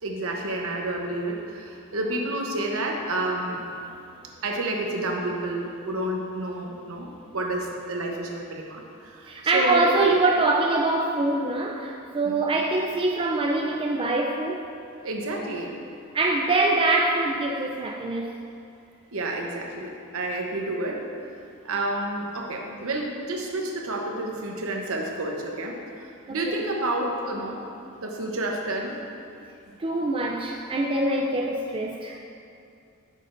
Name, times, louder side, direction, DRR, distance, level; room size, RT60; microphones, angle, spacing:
voice 1, 0.0-3.7 4.4-10.1 12.2-12.4 15.0-15.8 19.1-21.1 21.6-27.6 28.0-29.0 29.7-29.8, right 2 dB, 70° right, 1 dB, 0.9 m, -30 dB
voice 2, 9.3-14.7 16.1-18.3 26.3-26.6 29.8-32.2, right 2 dB, 25° right, 0 dB, 0.4 m, -24 dB
9.4 x 6.6 x 2.5 m, 2.5 s
head